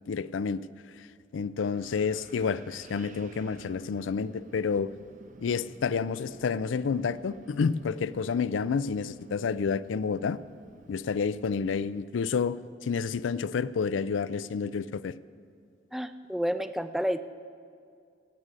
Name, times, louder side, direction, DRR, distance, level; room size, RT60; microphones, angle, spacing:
voice 1, 0.1-0.7 1.0-1.1 1.3-4.9 5.4-10.4 10.9-15.1, left 5 dB, 90° left, 17 dB, 0.4 m, -29 dB
Wind, 1.6-11.9, right 2 dB, 45° right, 0.7 m, -51 dB
voice 2, 15.9-17.2, equal, ahead, 11 dB, 0.4 m, -30 dB
17.0 x 6.4 x 8.3 m, 2.3 s
head